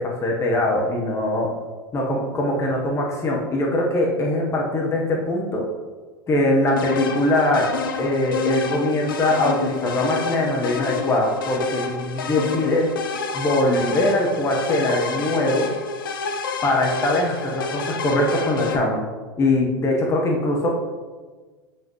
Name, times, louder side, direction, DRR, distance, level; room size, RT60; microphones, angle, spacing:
voice 1, 0.0-1.5 1.9-5.6 6.3-7.7 8.0-12.9 13.3-15.7 16.6-19.0 19.4-20.7, left 1 dB, 25° left, -1 dB, 1.2 m, -22 dB
sound 1, 6.8-18.8, left 4 dB, 70° left, 0.7 m, -29 dB
7.0 x 5.9 x 3.1 m, 1.4 s
hypercardioid pair, 85°, 12 cm